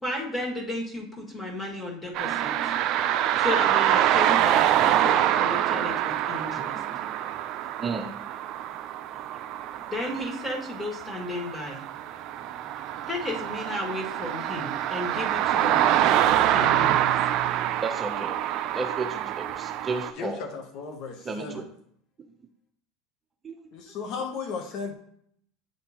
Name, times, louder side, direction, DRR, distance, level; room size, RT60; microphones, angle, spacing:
voice 1, 0.0-2.7 3.4-6.7 9.9-11.8 13.1-17.1, left 1 dB, 15° left, -1 dB, 2.1 m, -33 dB
sound 1, 2.1-20.1, right 11 dB, 55° right, 0.4 m, -25 dB
voice 2, 2.2-3.4 6.6-7.0 7.7-8.1 9.1-9.5 17.8-18.4 18.7-20.4 21.2-21.7 23.4-23.8, right 4 dB, 25° right, 4 dB, 0.7 m, -34 dB
voice 3, 20.2-21.7 23.7-24.9, left 5 dB, 60° left, 5 dB, 0.9 m, -35 dB
9.2 x 3.7 x 3.0 m, 0.68 s
hypercardioid pair, 90°, 0 cm